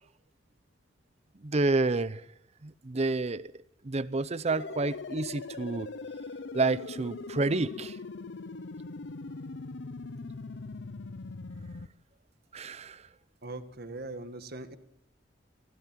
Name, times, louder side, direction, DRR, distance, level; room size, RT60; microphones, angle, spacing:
voice 1, 1.4-2.2 2.6-3.5 3.8-5.9 6.5-8.0 12.5-13.0, right 3 dB, 35° right, 0.7 m, -29 dB
sound 1, 4.5-11.9, left 3 dB, 70° left, 0.7 m, -41 dB
voice 2, 13.4-14.7, right 2 dB, 55° right, 1.7 m, -40 dB
23.5 x 16.0 x 7.6 m
head